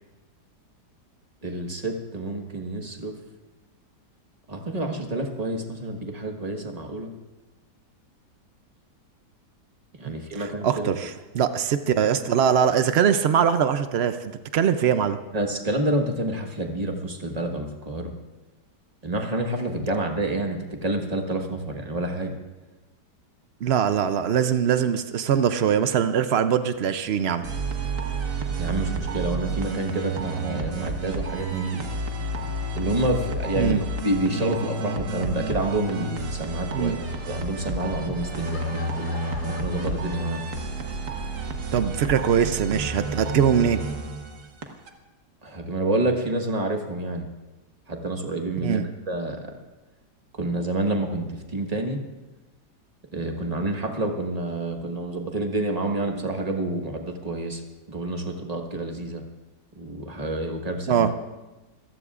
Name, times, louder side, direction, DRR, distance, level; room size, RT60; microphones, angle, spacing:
voice 1, 1.4-3.1 4.5-7.1 10.0-10.9 15.3-18.1 19.0-22.3 28.6-31.8 32.7-37.0 37.3-39.2 39.5-40.4 45.4-47.3 47.9-48.8 49.1-49.5 50.3-52.0 53.1-57.6 57.9-59.2 59.8-61.1, right 2 dB, 25° right, 3 dB, 1.3 m, -28 dB
voice 2, 10.3-15.2 23.6-27.5 33.6-33.8 36.7-37.0 41.7-43.8 48.6-48.9 60.9-61.1, right 8 dB, 90° right, 10 dB, 0.5 m, -22 dB
sound 1, 27.4-44.9, right 2 dB, 50° right, 1.5 m, -30 dB
Laughter / Crowd, 38.0-40.8, left 4 dB, 35° left, 0.9 m, -42 dB
26.5 x 15.0 x 2.5 m, 1.1 s
omnidirectional pair, 1.8 m